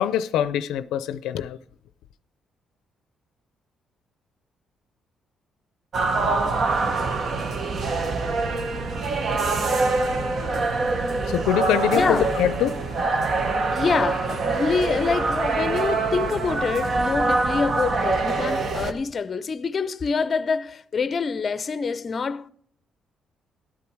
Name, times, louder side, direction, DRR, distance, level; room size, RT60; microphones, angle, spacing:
voice 1, 0.0-1.6 11.2-12.8 13.6-13.8, left 10 dB, 90° left, 0.5 m, -24 dB
sound 1, 5.9-18.9, right 3 dB, 55° right, 1.2 m, -24 dB
voice 2, 11.9-12.3 13.5-22.5, left 5 dB, 40° left, 0.5 m, -26 dB
13.0 x 8.4 x 4.6 m
cardioid pair, 90°, 0 cm